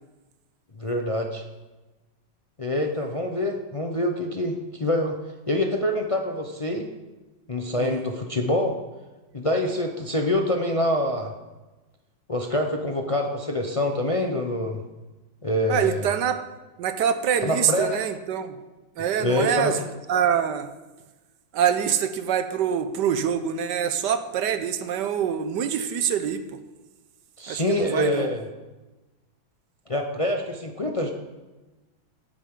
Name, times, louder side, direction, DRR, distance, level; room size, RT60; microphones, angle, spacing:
voice 1, 0.8-1.4 2.6-5.2 5.5-6.9 7.5-8.8 9.3-11.3 12.3-14.8 15.4-16.1 17.4-18.0 19.2-19.7 27.4-28.4 29.9-31.1, left 1 dB, 60° left, 3 dB, 0.3 m, -25 dB
voice 2, 15.7-16.4 16.8-18.5 19.0-20.7 21.5-26.4 27.5-28.3, right 8 dB, 65° right, 9 dB, 1.3 m, -25 dB
16.5 x 10.0 x 3.8 m, 1.1 s
omnidirectional pair, 2.1 m